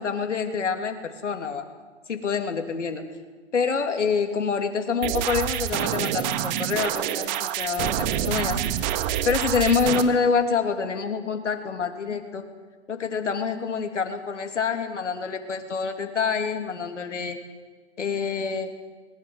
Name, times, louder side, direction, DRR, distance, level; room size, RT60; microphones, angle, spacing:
voice 1, 0.0-1.7 2.1-3.0 3.5-8.7 9.2-12.4 12.9-17.4 18.0-18.7, left 5 dB, 85° left, 5 dB, 3.1 m, -26 dB
sound 1, 5.0-10.0, right 11 dB, 40° right, 1.8 m, -27 dB
21.0 x 20.5 x 8.1 m, 1.4 s
hypercardioid pair, 130°, 35 cm